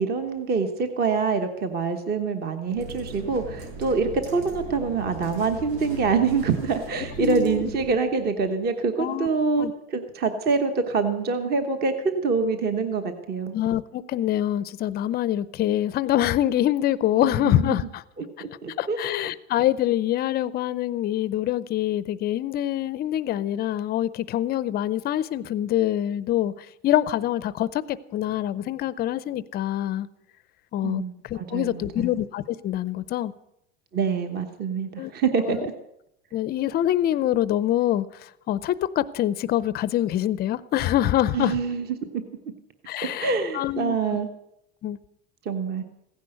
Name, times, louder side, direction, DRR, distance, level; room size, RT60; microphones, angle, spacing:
voice 1, 0.0-13.5 17.2-17.3 18.2-19.0 19.2-19.3 30.8-32.1 33.9-35.7 41.3-42.2 43.2-44.3 45.4-45.8, right 4 dB, 30° right, 1.2 m, -25 dB
sound 1, 2.6-8.0, right 2 dB, 85° right, 7.7 m, -38 dB
voice 2, 7.2-7.6 9.0-9.3 9.6-9.7 13.5-18.0 18.8-26.5 26.8-30.1 30.7-33.3 35.0-35.1 35.5-35.7 36.3-41.6 42.9-44.0 44.8-45.0, left 12 dB, 30° left, 0.5 m, -25 dB
16.0 x 10.5 x 7.9 m
supercardioid pair, 155°, 33 cm